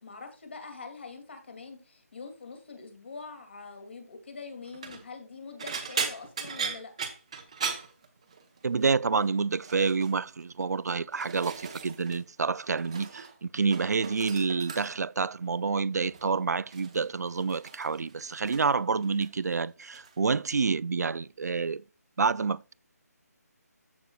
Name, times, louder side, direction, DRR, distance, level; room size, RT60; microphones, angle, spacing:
voice 1, 0.0-6.9, left 4 dB, 40° left, 2.5 m, -44 dB
sound 1, 4.6-5.0 5.6-8.6 8.9-9.3 9.6-10.1 10.8-12.2 12.5-13.3 13.6-15.1 16.0-16.3 16.7-18.8 19.0-19.6 19.9-20.2 21.4-21.5, right 6 dB, 20° right, 0.8 m, -38 dB
voice 2, 8.6-21.8 22.2-22.7, right 5 dB, 75° right, 0.4 m, -28 dB
14.0 x 6.3 x 2.3 m
hypercardioid pair, 175°, 9 cm